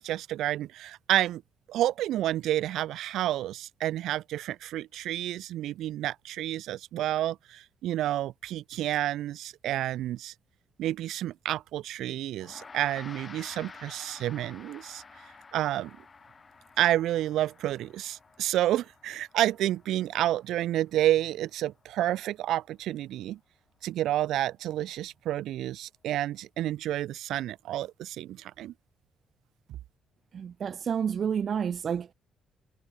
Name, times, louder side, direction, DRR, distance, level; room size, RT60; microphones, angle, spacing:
voice 1, 0.0-1.4 1.7-10.3 10.8-15.0 15.5-16.0 16.8-23.4 23.8-28.7, right 13 dB, 80° right, 1.4 m, -30 dB
Gong, 12.4-21.9, left 4 dB, 35° left, 2.5 m, -51 dB
voice 2, 30.3-32.1, right 7 dB, 55° right, 0.5 m, -30 dB
cardioid pair, 90°, 0 cm